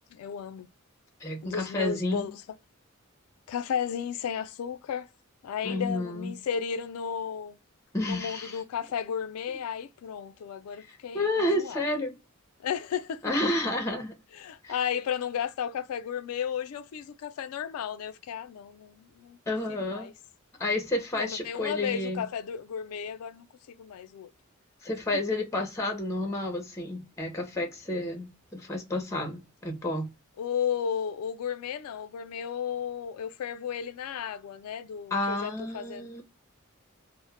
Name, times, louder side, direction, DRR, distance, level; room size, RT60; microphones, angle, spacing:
voice 1, 0.1-0.7 1.4-2.4 3.5-5.1 5.4-7.6 8.0-11.8 12.6-13.2 14.3-19.4 19.7-20.1 21.2-24.3 25.3-25.4 30.4-36.2, left 7 dB, 85° left, 0.3 m, -34 dB
voice 2, 1.2-2.3 5.6-6.3 7.9-8.6 10.8-12.2 13.2-14.1 14.6-14.8 19.5-20.1 20.6-22.2 24.8-30.1 35.1-36.2, left 1 dB, 15° left, 0.5 m, -30 dB
2.1 x 2.0 x 3.2 m
head